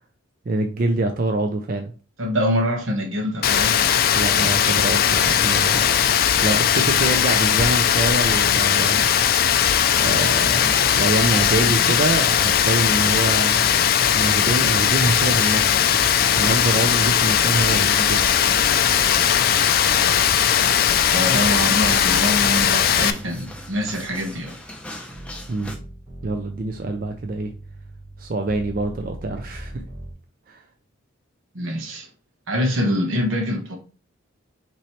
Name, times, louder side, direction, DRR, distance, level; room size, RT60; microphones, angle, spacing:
voice 1, 0.5-1.9 4.1-6.0 6.4-9.1 10.0-13.8 14.1-18.3 25.5-25.8 26.2-27.5 28.2-29.8 30.5-30.6, right 2 dB, 45° right, 0.5 m, -25 dB
voice 2, 2.2-3.8 6.0-6.1 21.1-24.6 31.5-32.1 32.5-33.8, equal, 80° right, 1.2 m, -24 dB
Rain, 3.4-23.1, left 9 dB, 50° left, 0.3 m, -19 dB
sound 1, 9.6-25.8, left 1 dB, 5° left, 0.6 m, -38 dB
sound 2, 14.9-17.0 17.5-24.6 25.1-30.1, right 1 dB, 20° right, 1.2 m, -40 dB
5.7 x 3.1 x 3.1 m
head